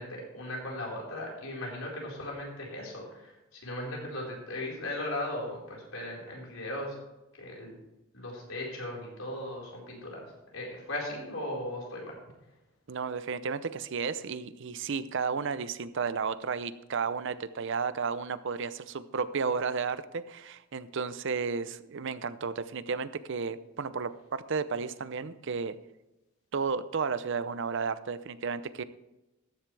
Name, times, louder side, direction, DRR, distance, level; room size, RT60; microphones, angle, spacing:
voice 1, 0.0-7.0 7.4-7.8 8.1-12.2, left 1 dB, 90° left, -3 dB, 4.4 m, -37 dB
voice 2, 12.9-25.7 26.5-28.8, right 5 dB, 65° right, 14 dB, 0.6 m, -33 dB
14.0 x 10.0 x 3.3 m, 0.98 s
head